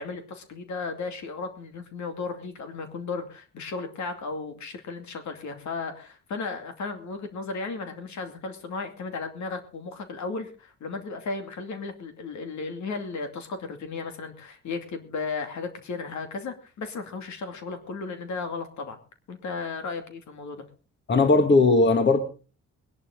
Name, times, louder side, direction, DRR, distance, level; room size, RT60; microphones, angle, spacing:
voice 1, 0.0-19.0 19.3-20.7, left 4 dB, 70° left, 7 dB, 2.5 m, -35 dB
voice 2, 21.1-22.2, left 3 dB, 35° left, 8 dB, 2.1 m, -18 dB
21.0 x 11.0 x 3.8 m, 0.34 s
cardioid pair, 90°, 30 cm